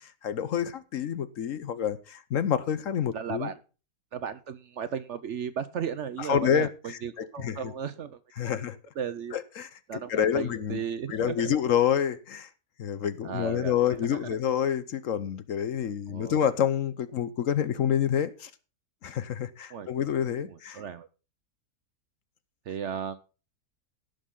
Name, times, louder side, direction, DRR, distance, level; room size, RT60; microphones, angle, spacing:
voice 1, 0.0-3.5 6.2-7.7 8.4-8.8 9.3-10.8 11.1-12.5 12.8-18.5 19.0-20.8, left 9 dB, 60° left, 1.1 m, -28 dB
voice 2, 3.1-3.6 4.1-8.2 9.0-9.4 9.9-11.6 13.2-13.8 14.1-14.4 16.1-16.4 19.7-20.1 20.4-21.1 22.7-23.2, right 7 dB, 60° right, 0.8 m, -35 dB
17.5 x 6.6 x 3.8 m
omnidirectional pair, 1.6 m